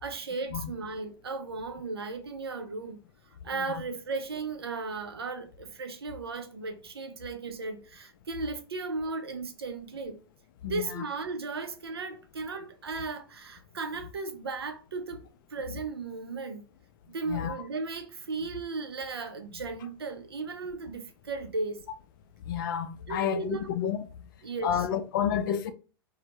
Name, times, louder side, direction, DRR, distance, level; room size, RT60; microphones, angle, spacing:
voice 1, 0.0-3.0 3.4-10.2 10.7-15.2 15.5-16.6 17.1-21.8 23.1-23.7 24.4-24.9, right 3 dB, 90° right, 0.5 m, -36 dB
voice 2, 10.6-11.0 17.3-17.6 22.5-24.1 24.6-25.7, left 9 dB, 60° left, 0.4 m, -30 dB
2.1 x 2.0 x 2.8 m
hypercardioid pair, 100°, 13 cm